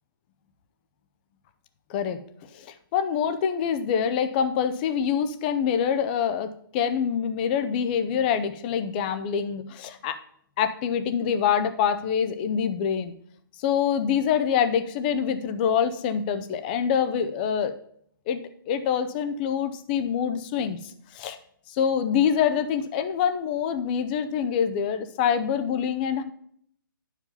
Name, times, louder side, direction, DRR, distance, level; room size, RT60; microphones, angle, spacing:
voice 1, 2.5-10.2 10.6-13.1 13.6-17.8 18.3-21.4 21.7-26.2, left 8 dB, 25° left, 11 dB, 0.6 m, -25 dB
9.4 x 4.9 x 5.5 m, 0.67 s
hypercardioid pair, 150°, 12 cm